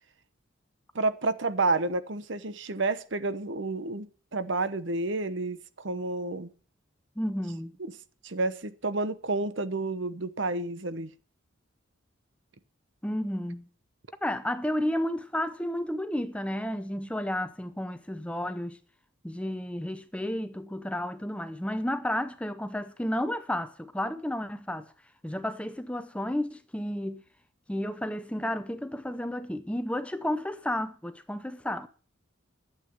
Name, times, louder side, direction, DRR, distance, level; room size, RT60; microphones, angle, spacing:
voice 1, 0.9-4.1 4.3-6.5 7.8-7.9 8.2-11.1, right 3 dB, 65° right, 0.9 m, -30 dB
voice 2, 7.2-7.7 13.0-13.7 14.2-18.8 19.2-24.9 25.2-27.2 27.7-31.9, left 1 dB, 5° left, 0.6 m, -32 dB
11.5 x 8.2 x 6.7 m
head